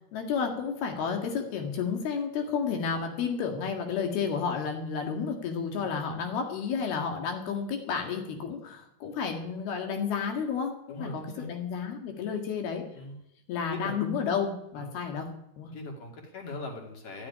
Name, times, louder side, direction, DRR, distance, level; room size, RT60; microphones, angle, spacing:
voice 1, 0.1-12.8 13.5-15.3 15.6-15.7, left 6 dB, 80° left, 3 dB, 4.0 m, -31 dB
voice 2, 10.9-11.5 12.9-13.2 13.7-14.0 14.7-14.9 15.7-17.3, left 2 dB, 45° left, 1 dB, 3.4 m, -40 dB
13.5 x 8.6 x 9.9 m, 0.80 s
omnidirectional pair, 4.4 m